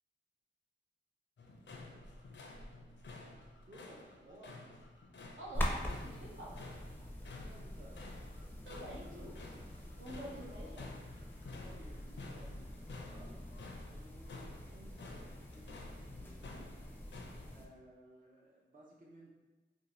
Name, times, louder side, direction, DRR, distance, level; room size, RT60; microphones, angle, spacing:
sound 1, 1.4-17.6, left 2 dB, 65° left, 0.4 m, -52 dB
voice 1, 3.7-4.6 7.5-8.1 10.2-10.6 11.6-19.3, right 1 dB, 40° right, -4 dB, 0.5 m, -59 dB
voice 2, 5.4-6.6 8.7-9.4 10.0-10.9, equal, 75° right, -5 dB, 0.7 m, -47 dB
sound 2, 5.5-17.7, equal, 10° left, 0.5 m, -44 dB
2.6 x 2.2 x 3.0 m, 1.2 s
cardioid pair, 50°, 20 cm